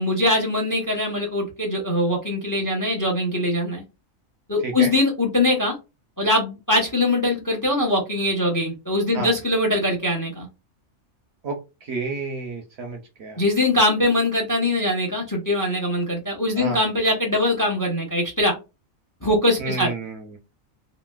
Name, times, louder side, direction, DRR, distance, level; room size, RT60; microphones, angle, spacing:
voice 1, 0.0-3.8 4.5-5.7 6.2-10.5 13.4-18.5 19.2-19.9, left 1 dB, 20° left, 2 dB, 0.6 m, -22 dB
voice 2, 11.4-13.4 16.6-16.8 19.6-20.4, right 3 dB, 60° right, 4 dB, 0.8 m, -31 dB
3.0 x 2.7 x 2.2 m, 0.26 s
omnidirectional pair, 1.4 m